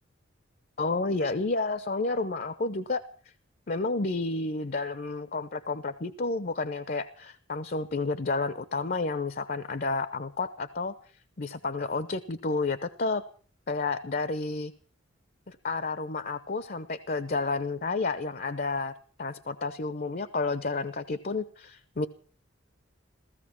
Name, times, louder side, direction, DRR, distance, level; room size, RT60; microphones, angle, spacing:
voice 1, 0.8-3.0 3.7-10.9 11.4-13.2 13.7-14.7 15.5-18.9 19.2-22.1, left 3 dB, 45° left, 13 dB, 0.8 m, -30 dB
16.0 x 14.5 x 6.0 m, 0.42 s
head